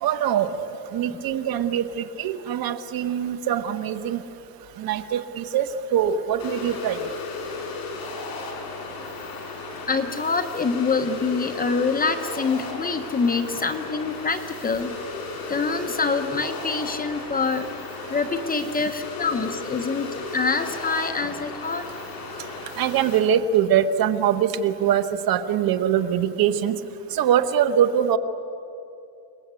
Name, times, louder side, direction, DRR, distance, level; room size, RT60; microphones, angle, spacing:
voice 1, 0.0-4.2 4.8-7.0 22.8-26.7 27.1-28.2, right 9 dB, 45° right, 10 dB, 1.3 m, -23 dB
sound 1, 6.4-23.2, left 3 dB, 45° left, 5.9 m, -35 dB
voice 2, 9.9-14.9 15.5-17.8 18.1-21.8, left 4 dB, 15° left, 7 dB, 1.0 m, -25 dB
29.0 x 20.5 x 8.4 m, 2.7 s
cardioid pair, 150°, 50 cm